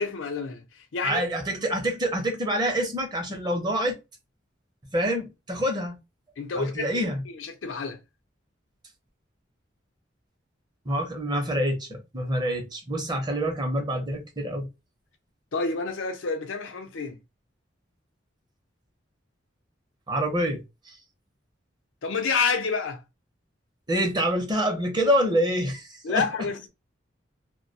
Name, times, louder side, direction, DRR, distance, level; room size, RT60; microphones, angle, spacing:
voice 1, 0.0-1.2 6.4-8.0 15.5-17.2 22.0-23.0 26.0-26.7, left 4 dB, 90° left, 0.5 m, -29 dB
voice 2, 1.0-3.9 4.9-6.0 6.6-7.2 10.9-14.7 20.1-21.0 23.9-26.3, equal, 20° right, 0.6 m, -26 dB
2.2 x 2.1 x 2.6 m
head